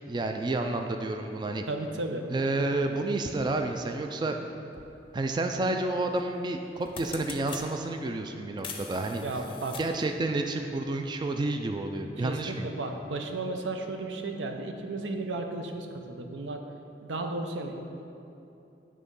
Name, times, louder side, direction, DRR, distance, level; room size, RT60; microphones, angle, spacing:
voice 1, 0.1-1.6 2.3-4.4 5.1-9.2 9.8-12.7, right 2 dB, 25° right, 5 dB, 0.3 m, -30 dB
voice 2, 1.7-2.3 9.2-9.8 12.2-16.6 17.0-17.8, right 2 dB, 90° right, 4 dB, 0.7 m, -34 dB
sound 1, 4.7-4.9 6.2-6.4 6.7-7.7 8.6-10.1, left 5 dB, 30° left, 0.6 m, -42 dB
9.2 x 3.7 x 5.4 m, 2.8 s
head